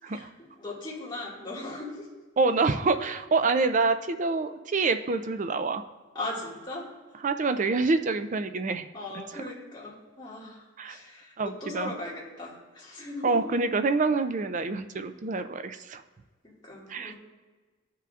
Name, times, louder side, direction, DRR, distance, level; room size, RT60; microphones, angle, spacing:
voice 1, 0.6-2.1 6.1-6.9 8.9-13.4 16.4-17.1, left 2 dB, 20° left, -5 dB, 2.0 m, -38 dB
voice 2, 2.4-5.8 7.2-8.9 9.3-9.4 10.8-11.0 11.4-11.9 13.2-16.0 16.9-17.1, right 3 dB, 40° right, 9 dB, 0.4 m, -26 dB
14.0 x 5.8 x 2.4 m, 1.3 s
head